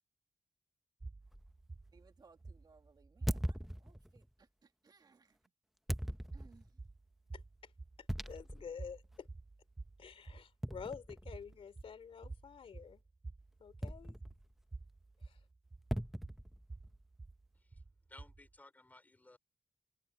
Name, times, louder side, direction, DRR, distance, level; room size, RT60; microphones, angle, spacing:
sound 1, 1.0-3.8 6.2-18.6, right 3 dB, 25° right, 4.0 m, -51 dB
sound 2, 1.3-1.5 3.3-4.3 5.9-6.7 8.1-8.7 9.2-9.3 10.6-11.5 13.8-14.6 15.9-17.0, equal, 5° right, 0.8 m, -40 dB
voice 1, 1.9-5.4 6.3-6.7, right 4 dB, 45° right, 1.9 m, -65 dB
voice 2, 7.3-7.7 8.0-9.3 10.0-13.0 13.6-14.2 15.2-15.4, left 6 dB, 85° left, 2.9 m, -49 dB
voice 3, 18.1-19.4, left 2 dB, 15° left, 4.7 m, -59 dB
wide cardioid pair, 160°, 9 cm